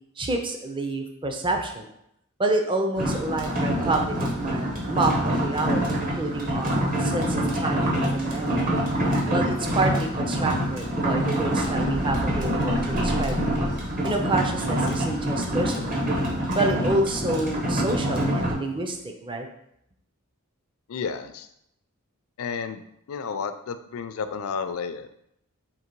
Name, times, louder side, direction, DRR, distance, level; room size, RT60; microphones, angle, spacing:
voice 1, 0.2-1.9 2.4-8.7 9.3-13.4 14.0-16.0 16.5-19.5, right 2 dB, 25° right, 3 dB, 0.5 m, -28 dB
sound 1, 3.0-18.5, equal, 40° right, 1.0 m, -26 dB
sound 2, 11.2-14.0, right 1 dB, 90° right, 0.6 m, -34 dB
voice 2, 20.9-21.5 22.4-25.1, left 6 dB, 70° left, 10 dB, 0.4 m, -32 dB
3.8 x 2.9 x 4.5 m, 0.77 s
head